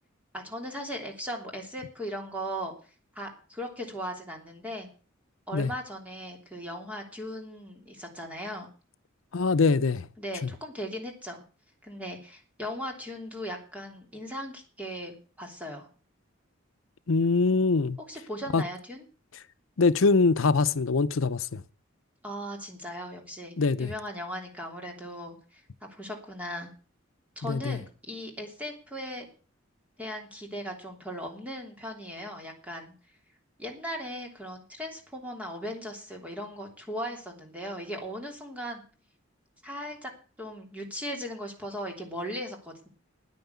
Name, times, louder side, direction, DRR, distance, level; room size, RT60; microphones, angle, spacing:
voice 1, 0.3-2.7 3.1-4.9 5.5-8.7 10.2-11.4 11.8-15.9 18.1-19.0 22.2-26.7 27.4-29.3 30.0-32.9 33.6-38.8 39.6-40.1 40.4-42.9, equal, 5° right, 3.1 m, -38 dB
voice 2, 9.3-10.0 17.1-18.0 18.5-18.6 19.8-21.6 23.6-23.9 27.5-27.8, left 4 dB, 90° left, 0.7 m, -23 dB
9.9 x 9.4 x 8.2 m
head